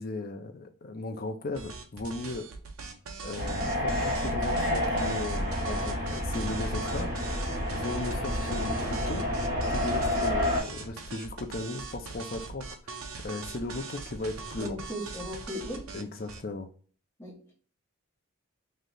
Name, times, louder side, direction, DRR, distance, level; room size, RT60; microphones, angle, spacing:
voice 1, 0.0-2.5 3.2-7.1 7.7-9.3 9.7-14.8 15.9-16.7, left 2 dB, 45° left, 0.6 m, -36 dB
sound 1, 1.5-16.4, right 4 dB, 85° right, 0.8 m, -41 dB
sound 2, 3.4-10.6, left 1 dB, 45° right, 1.6 m, -29 dB
voice 2, 14.6-15.9 17.2-17.5, left 1 dB, 10° left, 1.5 m, -37 dB
3.2 x 2.8 x 3.8 m
head